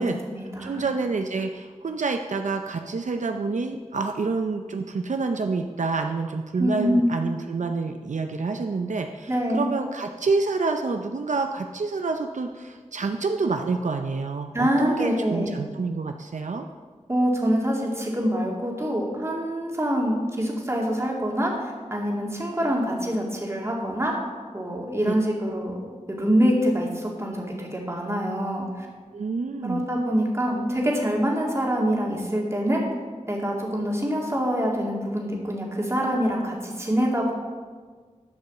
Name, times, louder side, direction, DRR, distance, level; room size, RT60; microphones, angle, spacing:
voice 1, 0.0-0.9 6.6-7.2 9.3-9.7 14.5-15.5 17.1-24.1 24.5-25.8 26.1-28.9 29.6-32.8 33.3-37.3, equal, 20° right, -2 dB, 2.4 m, -25 dB
voice 2, 0.6-16.7 25.0-25.1 29.1-29.8, right 4 dB, 75° right, 5 dB, 0.6 m, -28 dB
11.5 x 5.5 x 7.2 m, 1.5 s
wide cardioid pair, 80°, 13 cm